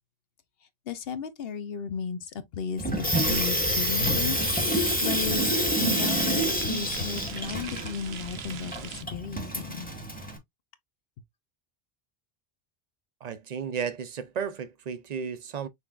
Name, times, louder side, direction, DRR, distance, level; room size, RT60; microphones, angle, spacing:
voice 1, 0.9-4.7 5.0-9.9, left 6 dB, 70° left, 0.9 m, -35 dB
Water tap faucet / Sink (filling or washing), 2.8-10.4, equal, 10° left, 1.1 m, -27 dB
sound 1, 3.2-9.0, right 8 dB, 80° right, 0.9 m, -40 dB
voice 2, 13.2-15.7, right 7 dB, 50° right, 0.6 m, -33 dB
5.9 x 3.4 x 2.4 m
omnidirectional pair, 1.0 m